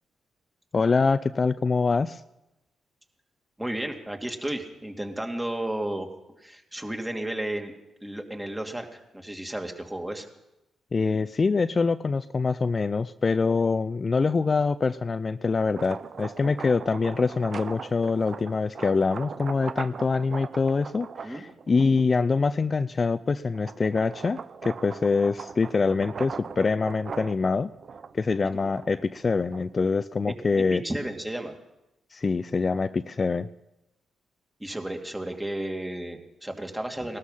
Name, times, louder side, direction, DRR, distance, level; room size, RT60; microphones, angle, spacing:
voice 1, 0.7-2.2 10.9-27.7 28.1-30.8 32.1-33.5, left 4 dB, 40° left, 12 dB, 0.5 m, -25 dB
voice 2, 3.6-6.1 6.4-7.7 8.0-10.3 21.2-21.4 28.5-28.6 30.3-31.5 34.6-37.2, right 1 dB, 10° right, 3 dB, 2.5 m, -33 dB
sound 1, 15.6-22.2 22.7-29.9, right 6 dB, 55° right, 0.7 m, -40 dB
19.0 x 13.0 x 5.7 m, 0.93 s
supercardioid pair, 55°, 0 cm